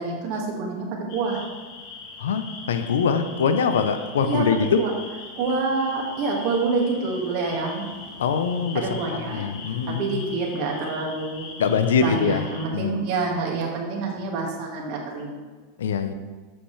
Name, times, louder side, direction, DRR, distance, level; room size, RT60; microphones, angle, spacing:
voice 1, 0.0-1.4 4.2-4.4 4.8-4.9 5.4-7.9 8.7-9.5 9.9-11.4 12.0-15.3, right 4 dB, 55° right, -1 dB, 1.8 m, -27 dB
sound 1, 1.1-12.7, left 4 dB, 60° left, 1.4 m, -41 dB
voice 2, 2.2-4.9 8.2-9.0 9.3-10.2 11.6-12.5 12.7-13.0 15.8-16.1, left 6 dB, 85° left, 9 dB, 0.6 m, -23 dB
8.0 x 5.7 x 3.3 m, 1.4 s
hypercardioid pair, 115°, 0 cm